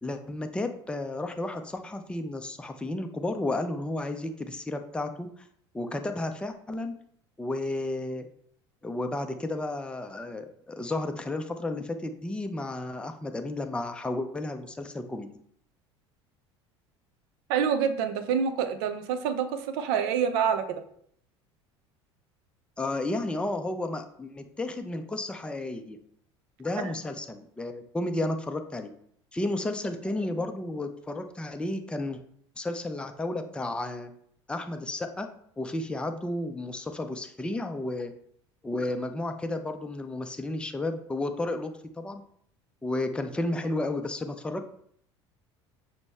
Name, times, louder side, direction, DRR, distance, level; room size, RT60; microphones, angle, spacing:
voice 1, 0.0-5.3 5.7-6.9 7.4-8.3 8.8-15.3 22.8-26.0 26.6-28.9 29.3-32.2 32.6-34.1 34.5-35.3 35.6-38.1 38.6-42.2 42.8-44.8, left 2 dB, 5° left, 6 dB, 0.5 m, -32 dB
voice 2, 17.5-20.8, right 7 dB, 65° right, 9 dB, 0.5 m, -27 dB
6.0 x 2.1 x 3.4 m, 0.64 s
hypercardioid pair, 70°, 14 cm